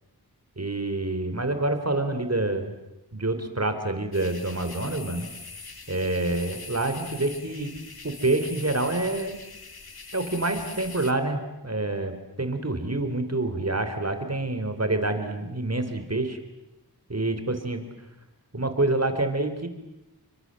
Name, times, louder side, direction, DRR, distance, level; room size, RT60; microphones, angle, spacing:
voice 1, 0.6-2.7 3.1-5.3 5.9-7.7 8.0-9.4 10.1-16.4 17.1-17.8 18.5-19.7, right 2 dB, 40° right, 8 dB, 4.3 m, -27 dB
sound 1, 4.1-11.1, left 4 dB, 70° left, 2.9 m, -42 dB
29.5 x 25.5 x 7.9 m, 0.94 s
wide cardioid pair, 70°, 38 cm